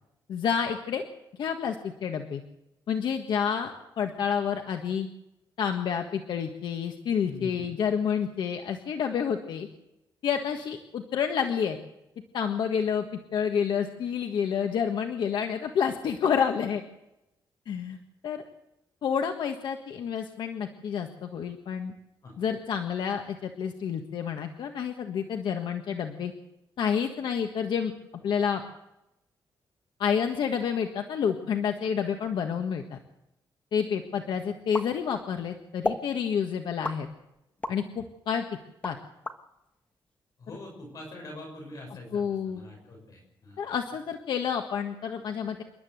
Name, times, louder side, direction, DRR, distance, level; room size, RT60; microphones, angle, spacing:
voice 1, 0.3-1.0 1.4-2.4 2.9-3.7 4.0-5.1 5.6-9.7 10.2-11.8 12.3-16.8 17.7-18.0 18.2-18.4 19.0-21.9 22.4-26.3 26.8-27.9 28.2-28.6 30.0-33.0 33.7-37.1 37.7-38.4 38.8-39.0 42.1-42.6 43.6-45.6, left 7 dB, 75° left, 5 dB, 1.6 m, -29 dB
voice 2, 7.2-7.7 22.2-22.4 40.4-43.6, left 2 dB, 45° left, 1 dB, 6.5 m, -44 dB
sound 1, 34.7-35.4 35.8-36.1 36.8-37.8 38.3-39.4, left 2 dB, 15° left, 1.4 m, -33 dB
27.5 x 12.0 x 8.0 m, 0.89 s
wide cardioid pair, 160°, 8 cm